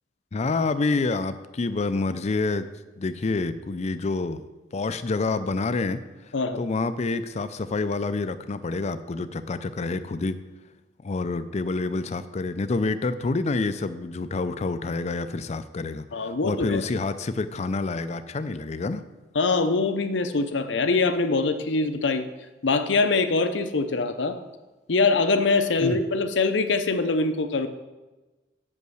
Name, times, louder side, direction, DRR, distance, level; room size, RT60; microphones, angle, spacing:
voice 1, 0.3-2.7 3.0-4.4 4.7-6.0 6.6-10.4 11.0-19.1 25.8-26.0, left 3 dB, 40° left, 12 dB, 0.4 m, -27 dB
voice 2, 6.3-6.6 16.1-16.8 19.3-22.2 22.6-24.4 24.9-27.7, left 3 dB, 80° left, 9 dB, 0.7 m, -23 dB
7.9 x 5.5 x 6.3 m, 1.2 s
head